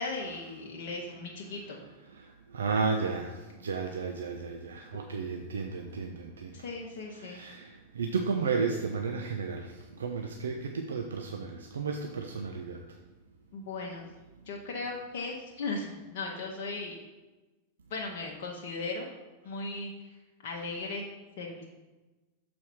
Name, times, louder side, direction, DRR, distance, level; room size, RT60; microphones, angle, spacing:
voice 1, 0.0-1.8 6.5-7.4 13.5-14.1 14.5-17.0 17.9-19.1 19.4-19.9 20.4-21.6, left 3 dB, 50° left, -1 dB, 0.8 m, -37 dB
voice 2, 2.1-6.6 7.2-13.0, right 5 dB, 65° right, 3 dB, 0.5 m, -33 dB
6.9 x 4.3 x 4.4 m, 1.2 s
figure-of-eight pair, 90°, 0 cm